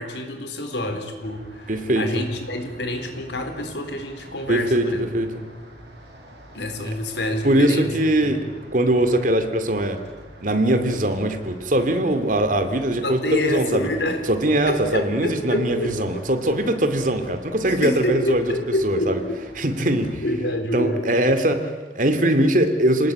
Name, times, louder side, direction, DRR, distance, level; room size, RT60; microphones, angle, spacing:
voice 1, 0.0-5.0 6.5-7.9 8.2-8.4 13.0-14.3 14.7-16.3 17.6-19.4 20.2-21.1, left 1 dB, 85° left, 6 dB, 4.0 m, -27 dB
sound 1, 1.2-20.2, equal, 70° right, 6.9 m, -46 dB
voice 2, 1.7-2.0 4.5-4.9 5.1-5.4 7.4-8.4 8.7-10.0 10.4-13.9 14.3-18.4 18.8-19.2 19.6-20.2 20.7-23.1, right 1 dB, 50° right, 8 dB, 2.6 m, -21 dB
26.5 x 19.0 x 8.9 m, 1.4 s
head